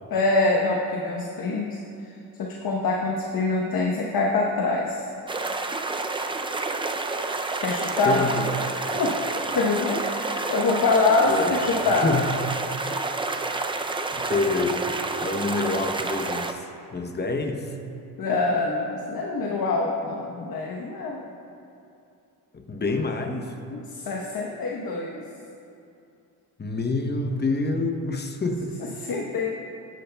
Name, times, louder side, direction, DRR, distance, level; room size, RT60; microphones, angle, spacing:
voice 1, 0.1-1.8 2.4-5.1 7.6-8.2 8.9-9.2 9.5-12.1 18.2-21.2 23.7-25.2 28.8-29.5, left 3 dB, 55° left, -1 dB, 1.0 m, -25 dB
sound 1, 5.3-16.5, right 3 dB, 15° right, 0.4 m, -29 dB
voice 2, 8.0-8.5 11.3-11.6 11.8-12.2 14.1-16.7 16.9-17.8 22.5-23.5 26.6-28.7, left 3 dB, 25° left, 4 dB, 0.8 m, -27 dB
13.5 x 10.0 x 2.3 m, 2.6 s
cardioid pair, 100°, 42 cm